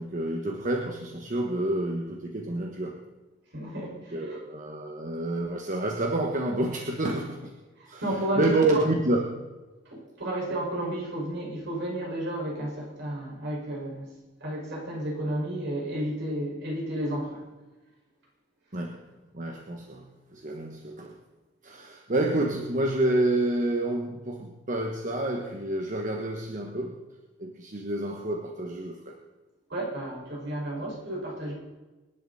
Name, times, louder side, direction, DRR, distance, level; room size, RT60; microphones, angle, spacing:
voice 1, 0.0-3.0 4.1-7.5 7.9-9.4 18.7-19.0 19.3-21.2 21.6-27.0 27.4-29.2, right 1 dB, 40° right, 2 dB, 1.3 m, -29 dB
voice 2, 3.5-4.4 7.8-8.9 9.9-14.1 14.4-17.4 29.7-31.5, right 1 dB, 65° right, -3 dB, 5.5 m, -32 dB
25.0 x 11.0 x 4.2 m, 1.2 s
head